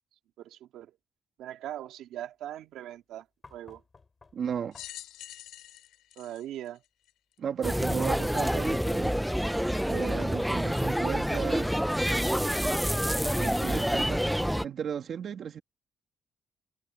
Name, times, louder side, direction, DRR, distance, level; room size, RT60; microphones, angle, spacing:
voice 1, 0.4-0.9 1.4-3.3 3.5-3.8 6.2-6.8, right 12 dB, 85° right, 2.5 m, -40 dB
sound 1, 3.4-5.2 8.4-10.1 11.6-11.7, left 4 dB, 30° left, 4.0 m, -58 dB
voice 2, 4.3-4.8 7.4-9.1 9.8-11.7 13.3-14.2 14.6-15.6, right 7 dB, 60° right, 2.5 m, -34 dB
sound 2, 4.7-7.4 8.1-8.2 9.3-9.4, left 13 dB, 90° left, 2.6 m, -46 dB
sound 3, 7.6-14.7, equal, ahead, 0.6 m, -27 dB
cardioid pair, 90°, 0 cm